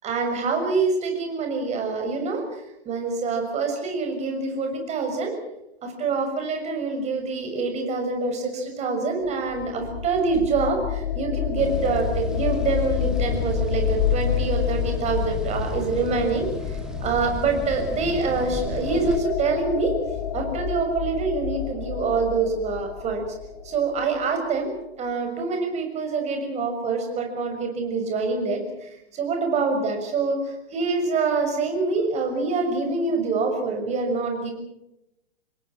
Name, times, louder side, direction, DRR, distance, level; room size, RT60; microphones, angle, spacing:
voice 1, 0.0-5.4 5.8-19.9 20.3-23.2 23.6-24.7 25.0-30.4 30.7-34.5, right 4 dB, 20° right, 4 dB, 6.4 m, -26 dB
sound 1, 9.3-24.1, left 9 dB, 45° left, 3.8 m, -29 dB
sound 2, 11.6-19.2, equal, ahead, 2.3 m, -35 dB
27.5 x 22.0 x 6.1 m, 0.86 s
figure-of-eight pair, 115°, 31 cm